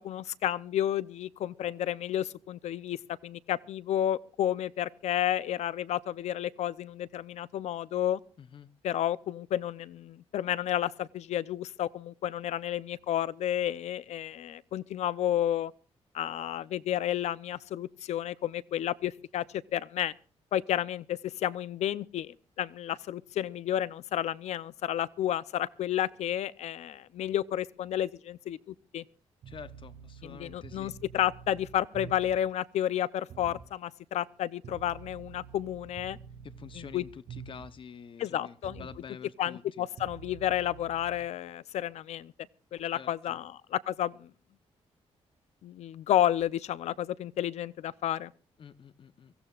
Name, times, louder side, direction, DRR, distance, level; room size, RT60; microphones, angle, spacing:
voice 1, 0.0-3.0 3.2-8.2 8.8-15.7 16.1-20.1 20.5-29.0 30.2-36.2 36.8-37.0 38.2-38.9 39.4-42.3 42.7-44.3 45.6-48.3, left 11 dB, 80° left, 0.6 m, -31 dB
voice 2, 8.4-8.7 29.5-31.0 36.4-39.9 42.9-43.4 48.6-49.3, left 7 dB, 50° left, 0.9 m, -48 dB
sound 1, 29.4-32.5 33.3-33.7 34.6-37.8 38.6-39.0 40.0-41.2, right 7 dB, 80° right, 2.3 m, -47 dB
24.0 x 16.0 x 2.4 m
cardioid pair, 105°, 11 cm